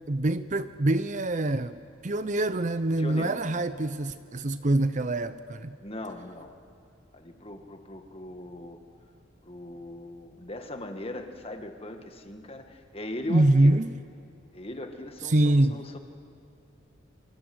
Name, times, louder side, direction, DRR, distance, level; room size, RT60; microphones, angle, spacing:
voice 1, 0.1-5.8 13.3-13.9 15.2-15.8, right 1 dB, 35° right, 13 dB, 0.6 m, -25 dB
voice 2, 3.0-3.4 5.8-6.5 7.1-8.8 9.4-13.8 14.5-16.0, left 1 dB, 30° left, 5 dB, 1.8 m, -39 dB
27.5 x 26.0 x 7.9 m, 2.5 s
head